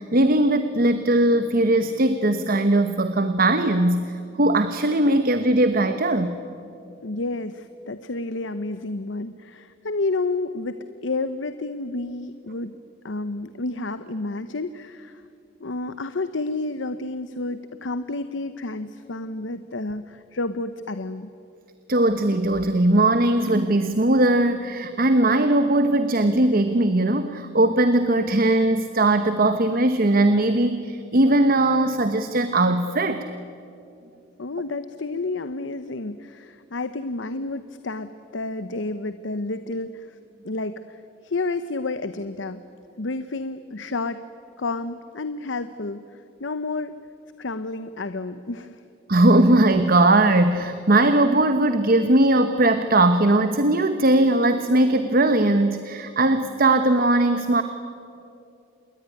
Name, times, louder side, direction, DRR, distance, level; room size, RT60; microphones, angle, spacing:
voice 1, 0.0-6.3 21.9-33.2 49.1-57.6, right 2 dB, 50° right, 9 dB, 1.1 m, -19 dB
voice 2, 7.0-12.7 13.0-15.2 15.6-21.3 34.4-40.2 40.4-42.6 43.0-44.2 44.6-46.9 47.4-48.9, left 2 dB, 80° left, 12 dB, 0.9 m, -30 dB
28.0 x 21.5 x 9.8 m, 2.6 s
head